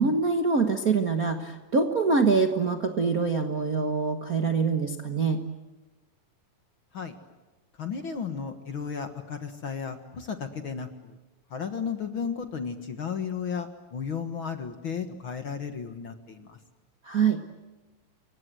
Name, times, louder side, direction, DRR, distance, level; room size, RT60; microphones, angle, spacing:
voice 1, 0.0-5.4 17.0-17.4, right 4 dB, 85° right, 5 dB, 0.8 m, -24 dB
voice 2, 7.8-11.2 11.5-16.6, left 6 dB, 50° left, 7 dB, 1.7 m, -34 dB
29.5 x 24.0 x 7.9 m, 1.2 s
omnidirectional pair, 4.1 m